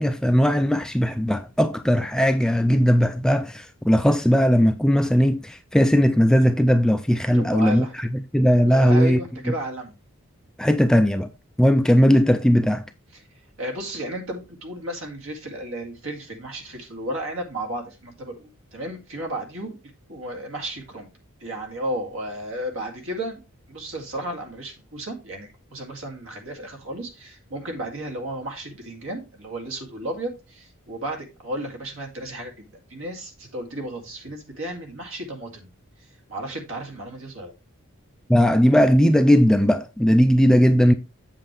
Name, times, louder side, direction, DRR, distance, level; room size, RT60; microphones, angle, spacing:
voice 1, 0.0-9.2 10.6-11.3 11.6-12.8 38.3-40.9, equal, 5° left, 0.3 m, -18 dB
voice 2, 7.3-7.9 8.7-9.9 13.1-13.2 13.6-19.8 20.1-21.1 21.4-23.4 23.7-35.7 36.3-37.5, right 1 dB, 65° right, 2.3 m, -33 dB
7.7 x 7.5 x 3.2 m
head